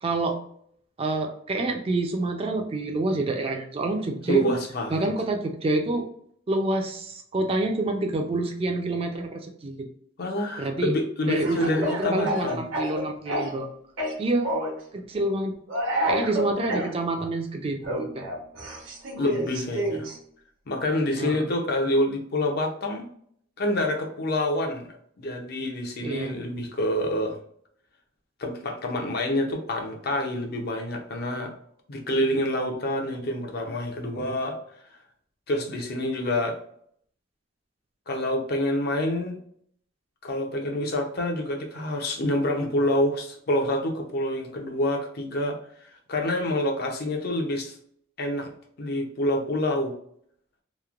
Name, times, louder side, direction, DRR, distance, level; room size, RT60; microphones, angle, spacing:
voice 1, 0.0-0.4 1.0-4.5 4.9-6.1 6.5-9.9 10.6-10.9 11.3-13.7 14.2-14.5 14.9-15.5 16.1-18.3 21.2-21.5 26.0-26.3, right 2 dB, 30° right, 3 dB, 0.3 m, -27 dB
voice 2, 4.3-5.1 10.2-12.6 19.2-20.1 20.7-23.1 23.6-24.9 25.2-27.4 28.4-31.5 31.9-34.6 35.5-36.6 38.1-39.4 40.2-45.6 45.8-47.8 48.2-48.5 48.8-49.9, left 1 dB, 55° left, 3 dB, 0.5 m, -27 dB
Speech / Cough, 11.4-13.7 14.0-14.8 15.7-16.9 17.8-20.2, equal, 90° right, 0.9 m, -29 dB
3.0 x 2.1 x 2.4 m, 0.64 s
head